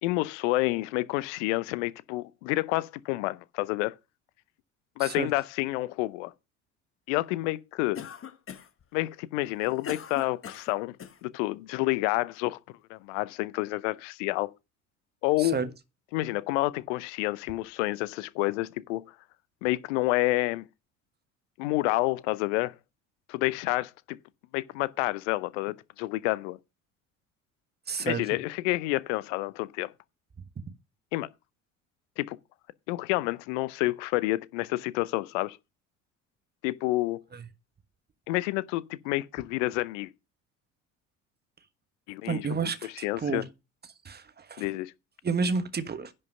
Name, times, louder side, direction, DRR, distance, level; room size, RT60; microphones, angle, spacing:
voice 1, 0.0-3.9 5.0-6.3 7.1-8.1 8.9-11.0 11.2-12.6 12.9-14.5 15.2-15.6 16.1-19.0 19.6-20.7 21.6-22.7 23.3-24.2 24.5-26.6 28.0-29.9 31.1-31.3 32.2-32.4 32.9-35.6 36.6-37.2 38.3-40.1 42.1-42.7 43.0-43.4 44.6-44.9, left 19 dB, 65° left, 0.7 m, -29 dB
voice 2, 5.0-5.3 15.4-15.7 27.9-28.2 37.3-37.5 42.2-43.5 44.0-44.7 45.2-46.1, right 5 dB, 25° right, 1.3 m, -31 dB
Cough, 8.0-8.8 9.4-11.2, left 7 dB, 35° left, 1.3 m, -41 dB
10.5 x 5.4 x 5.3 m
figure-of-eight pair, 60°, 40 cm